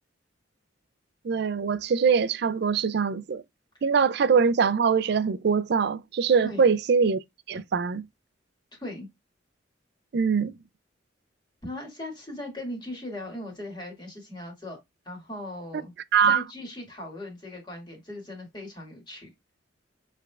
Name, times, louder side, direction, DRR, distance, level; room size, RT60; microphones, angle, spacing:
voice 1, 1.2-3.4 3.8-7.2 7.5-8.0 10.1-10.5 16.1-16.4, right 6 dB, 60° right, 0.4 m, -23 dB
voice 2, 11.6-14.8 15.1-15.9 16.3-19.3, left 1 dB, 25° left, 2.0 m, -38 dB
6.7 x 3.3 x 2.3 m
head